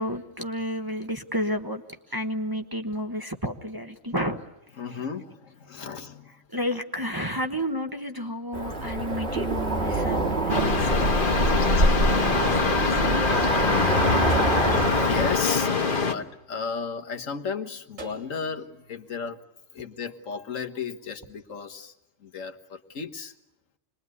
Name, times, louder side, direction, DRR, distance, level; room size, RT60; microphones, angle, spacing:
voice 1, 0.0-1.8 2.1-4.4 4.9-5.0 6.5-13.6, equal, 20° right, 4 dB, 1.2 m, -32 dB
voice 2, 4.8-6.4 14.0-14.5 15.0-19.4 19.7-21.9 22.2-23.3, left 5 dB, 75° left, 5 dB, 1.7 m, -34 dB
Cricket / Motor vehicle (road), 8.5-15.4, right 1 dB, 50° right, 2.4 m, -25 dB
sound 1, 10.5-16.1, left 4 dB, 45° left, 1.4 m, -24 dB
sound 2, 16.4-16.8 18.0-19.4, right 2 dB, 75° right, 3.7 m, -48 dB
26.5 x 21.5 x 9.5 m, 0.88 s
omnidirectional pair, 1.3 m